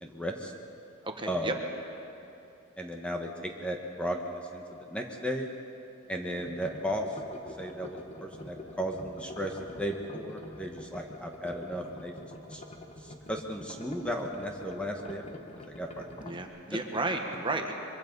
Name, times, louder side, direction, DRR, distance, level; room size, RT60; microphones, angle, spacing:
voice 1, 0.0-0.5 1.3-1.6 2.8-5.5 6.1-7.2 7.6-12.2 12.5-12.6 13.0-16.1, equal, 5° left, 2 dB, 1.3 m, -35 dB
voice 2, 1.0-1.5 16.2-17.7, right 2 dB, 25° right, 3 dB, 1.4 m, -33 dB
sound 1, 6.4-16.4, left 1 dB, 30° left, 1.4 m, -46 dB
24.0 x 23.5 x 5.4 m, 2.8 s
head